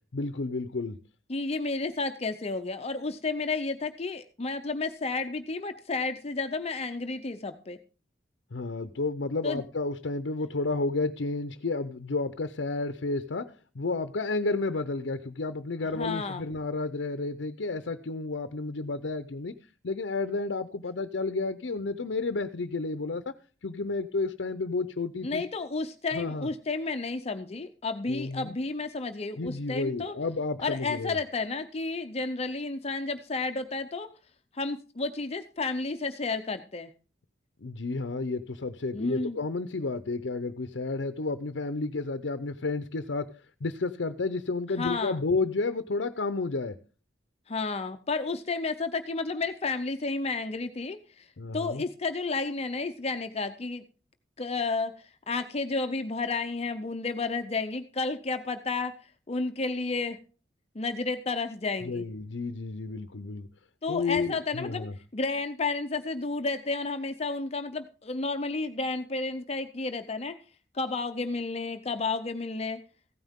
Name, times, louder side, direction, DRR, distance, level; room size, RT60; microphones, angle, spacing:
voice 1, 0.1-1.0 8.5-19.6 19.8-23.3 23.6-25.4 26.1-26.5 28.1-28.6 29.4-31.2 37.6-43.3 43.6-46.7 51.4-51.8 61.8-63.5 63.9-64.9, left 3 dB, 70° left, 10 dB, 0.7 m, -31 dB
voice 2, 1.3-7.8 9.4-9.6 15.9-16.5 25.2-30.1 30.6-34.1 34.5-36.9 38.9-39.4 44.8-45.2 47.5-51.2 51.5-53.8 54.4-58.9 59.3-60.2 60.7-62.0 63.8-64.9 65.1-70.4 70.7-72.8, left 3 dB, 35° left, 8 dB, 0.6 m, -31 dB
15.5 x 9.3 x 3.6 m, 0.38 s
head